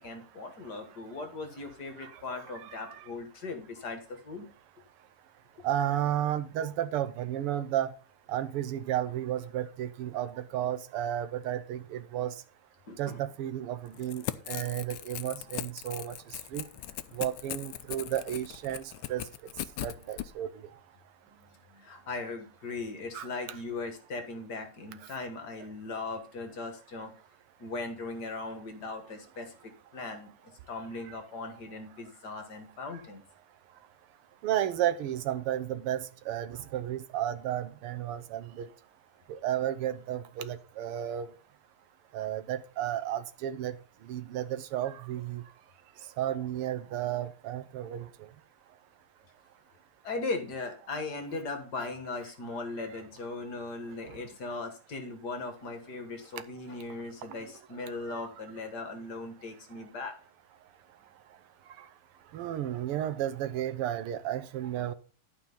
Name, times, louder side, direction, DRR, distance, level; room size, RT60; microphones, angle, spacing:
voice 1, 0.0-4.5 12.9-13.2 21.3-27.1 27.6-30.3 30.7-33.2 50.0-60.1, left 3 dB, 50° left, 6 dB, 1.8 m, -38 dB
voice 2, 2.0-3.1 5.6-7.9 8.3-12.4 13.0-16.7 17.1-19.3 19.8-20.7 23.1-23.3 30.1-30.2 31.1-31.2 34.4-38.7 39.3-41.3 42.1-43.8 44.0-45.4 46.2-48.3 54.0-54.2 57.2-57.4 58.0-58.2 61.7-61.9 62.3-64.9, right 11 dB, 80° right, 11 dB, 1.7 m, -33 dB
Crackle / Tearing, 13.9-20.3, left 13 dB, 75° left, 1.1 m, -39 dB
11.5 x 5.1 x 5.3 m, 0.38 s
omnidirectional pair, 2.4 m